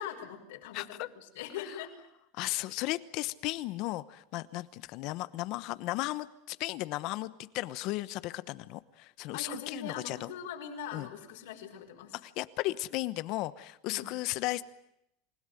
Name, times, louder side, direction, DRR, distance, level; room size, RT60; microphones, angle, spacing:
voice 1, 0.0-1.9 2.3-2.5 9.3-12.2 13.9-14.1, left 7 dB, 80° left, 2 dB, 5.3 m, -42 dB
voice 2, 0.7-1.1 1.7-1.8 2.3-10.3 10.9-11.1 12.2-14.6, left 18 dB, 55° left, 15 dB, 1.0 m, -35 dB
28.0 x 17.0 x 9.2 m, 0.82 s
supercardioid pair, 140°, 0 cm